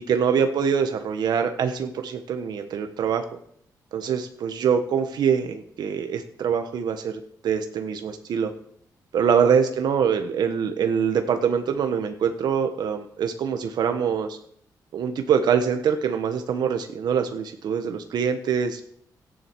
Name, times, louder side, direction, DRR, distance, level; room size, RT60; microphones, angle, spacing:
voice 1, 0.1-3.2 3.9-8.5 9.1-14.4 14.9-18.8, right 7 dB, 75° right, 7 dB, 1.3 m, -24 dB
13.5 x 10.0 x 4.7 m, 0.67 s
cardioid pair, 85°, 7 cm